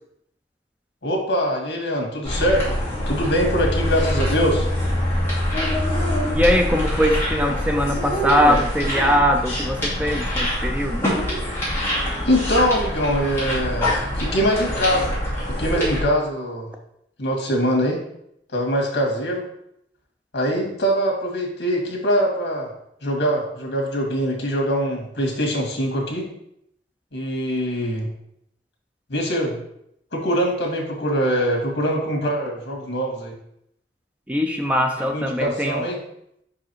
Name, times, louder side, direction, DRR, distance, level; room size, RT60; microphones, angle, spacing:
voice 1, 1.0-2.8 3.1-4.7 12.2-15.2 15.5-16.7 17.2-18.0 18.5-19.5 20.3-22.7 23.0-26.3 27.1-28.1 29.1-29.6 30.1-33.4 35.0-36.0, equal, 75° left, 0 dB, 1.9 m, -23 dB
sound 1, 2.2-16.0, equal, 15° left, 2.5 m, -24 dB
voice 2, 6.3-11.1 34.3-35.8, equal, 10° right, 3 dB, 0.5 m, -21 dB
5.4 x 4.8 x 4.5 m, 0.74 s
head